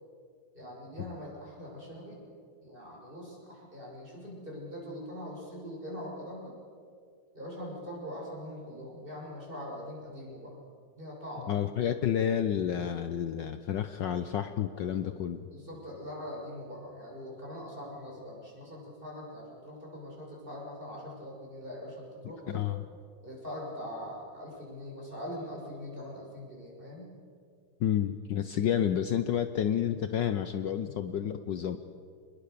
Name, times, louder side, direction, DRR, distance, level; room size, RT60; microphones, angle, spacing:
voice 1, 0.5-2.3 2.6-6.5 7.3-10.6 11.0-11.7 15.5-22.7 23.2-27.1 30.8-31.0, equal, 25° right, -3 dB, 6.7 m, -42 dB
voice 2, 11.5-15.4 22.5-22.8 27.8-31.8, left 9 dB, 65° left, 10 dB, 1.4 m, -30 dB
27.5 x 21.0 x 6.9 m, 2.3 s
omnidirectional pair, 2.3 m